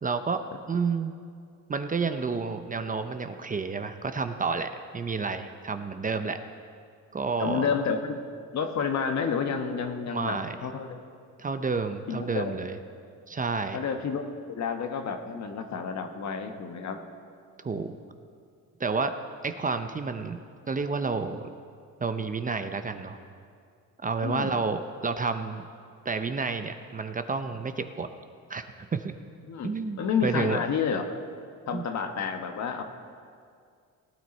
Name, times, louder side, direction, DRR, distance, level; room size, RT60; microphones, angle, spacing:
voice 1, 0.0-0.4 0.7-1.1 1.7-6.4 7.1-7.7 10.1-10.6 11.4-12.8 13.3-13.8 17.6-18.0 18.8-19.1 19.4-20.4 20.7-21.5 22.0-23.2 24.0-25.6 26.0-28.1 28.5-28.6 28.9-29.1 29.6-30.6 31.7-31.8, right 4 dB, 25° right, 8 dB, 0.6 m, -30 dB
voice 2, 7.4-8.2 8.5-11.0 12.1-12.5 13.7-14.2 14.5-17.0 17.7-17.8 24.2-24.5 29.4-31.0 31.7-32.8, left 6 dB, 60° left, 6 dB, 1.2 m, -30 dB
18.5 x 9.3 x 4.3 m, 2.2 s
cardioid pair, 95°, 32 cm